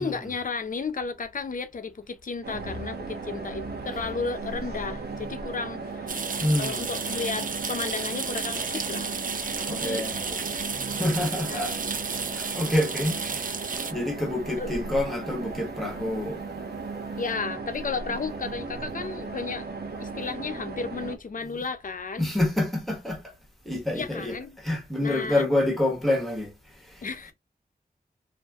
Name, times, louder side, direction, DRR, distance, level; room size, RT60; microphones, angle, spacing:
voice 1, 0.0-6.2 6.6-9.1 9.6-10.1 10.3-10.6 11.5-11.8 14.6-14.7 17.2-19.7 20.0-22.3 23.9-24.6 25.0-25.4 27.0-27.3, left 4 dB, 55° left, 0.6 m, -33 dB
sound 1, 2.4-21.2, right 3 dB, 90° right, 0.8 m, -36 dB
sound 2, 6.1-13.9, right 5 dB, 55° right, 0.5 m, -32 dB
voice 2, 6.4-6.9 9.7-10.2 10.9-11.8 12.3-13.5 13.9-16.4 21.4-21.6 22.2-23.2 23.6-26.5 26.9-27.0, left 1 dB, ahead, 1.2 m, -27 dB
2.6 x 2.6 x 3.4 m
wide cardioid pair, 75°, 16 cm